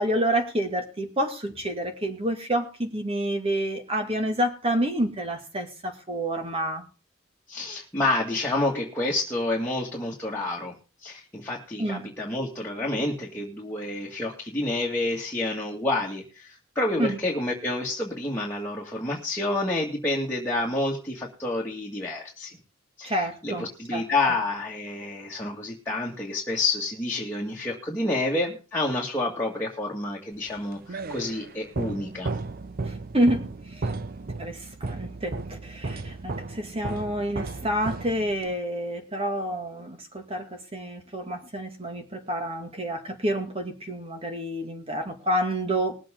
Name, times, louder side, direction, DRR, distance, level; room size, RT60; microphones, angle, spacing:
voice 1, 0.0-6.8 11.8-12.1 17.0-17.2 23.0-24.4 32.9-33.5 33.7-33.9 34.4-45.9, right 1 dB, 30° right, 5 dB, 2.1 m, -28 dB
voice 2, 7.5-10.7 11.0-22.6 23.0-32.3, left 2 dB, 10° left, -4 dB, 2.0 m, -29 dB
sound 1, 30.5-38.6, right 3 dB, 45° right, 0.6 m, -35 dB
21.0 x 7.6 x 3.7 m, 0.33 s
head